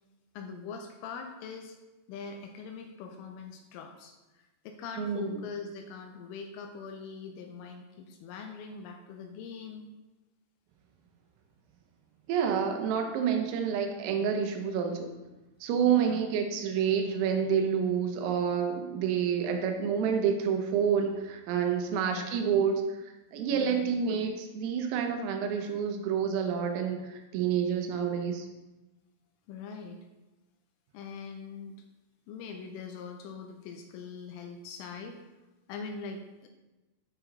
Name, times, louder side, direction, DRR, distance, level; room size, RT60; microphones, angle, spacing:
voice 1, 0.3-1.8 2.1-9.9 15.8-16.2 22.0-22.3 23.5-23.9 29.5-30.0 30.9-31.8 32.3-35.2 35.7-36.5, left 5 dB, 85° left, 4 dB, 3.1 m, -42 dB
voice 2, 5.0-5.4 12.3-15.1 15.6-28.5, right 7 dB, 85° right, 4 dB, 3.5 m, -28 dB
9.2 x 6.0 x 3.8 m, 1.1 s
omnidirectional pair, 5.9 m